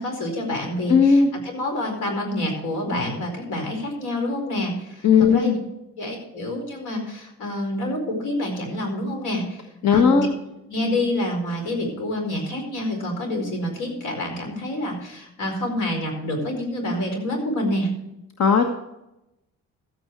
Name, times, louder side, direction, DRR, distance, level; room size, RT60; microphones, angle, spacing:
voice 1, 0.0-5.6 6.0-9.6 9.9-10.3 10.7-17.9, left 1 dB, 85° left, 3 dB, 4.7 m, -27 dB
voice 2, 0.9-1.3 5.0-5.6 9.8-10.3 18.4-18.7, left 6 dB, 60° left, 3 dB, 1.4 m, -16 dB
13.5 x 9.0 x 4.7 m, 0.89 s
cardioid pair, 90°, 30 cm